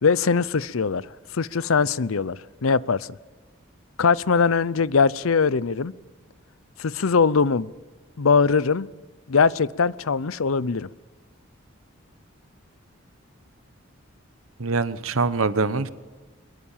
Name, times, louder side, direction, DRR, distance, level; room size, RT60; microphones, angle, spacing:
voice 1, 0.0-1.1 1.3-3.1 4.0-5.9 6.8-7.7 8.2-8.9 9.3-10.9, left 5 dB, 85° left, 20 dB, 0.6 m, -21 dB
voice 2, 14.6-15.9, right 4 dB, 90° right, 14 dB, 1.1 m, -24 dB
23.0 x 22.0 x 7.3 m, 1.3 s
head